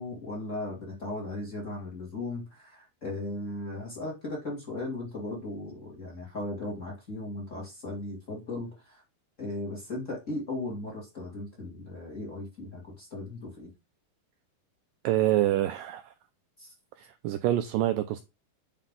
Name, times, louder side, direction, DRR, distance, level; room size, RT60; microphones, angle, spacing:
voice 1, 0.0-9.0 9.4-13.7 16.6-16.7, left 2 dB, 25° left, 2.3 m, -37 dB
voice 2, 15.0-16.1 17.0-18.2, right 13 dB, 85° right, 1.9 m, -26 dB
9.4 x 4.1 x 3.7 m
omnidirectional pair, 4.4 m